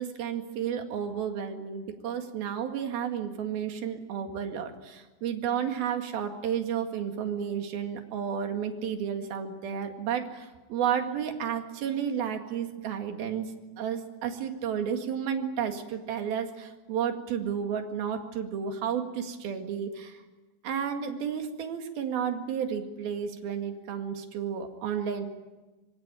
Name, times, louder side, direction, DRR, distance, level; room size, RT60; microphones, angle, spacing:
voice 1, 0.0-20.2 20.6-25.3, right 8 dB, 60° right, 5 dB, 3.6 m, -32 dB
25.0 x 24.5 x 9.1 m, 1.2 s
omnidirectional pair, 5.1 m